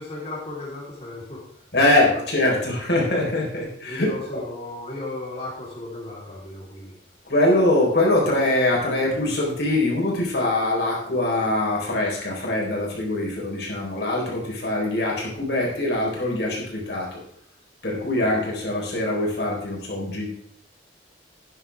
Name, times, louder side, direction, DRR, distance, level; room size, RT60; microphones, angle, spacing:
voice 1, 0.0-2.2 3.8-7.2 18.1-18.4, left 2 dB, 35° left, -6 dB, 3.7 m, -36 dB
voice 2, 1.7-4.1 4.3-4.4 7.2-17.2 17.8-20.3, left 1 dB, 65° left, -2 dB, 4.2 m, -23 dB
13.0 x 9.9 x 3.5 m, 0.65 s
head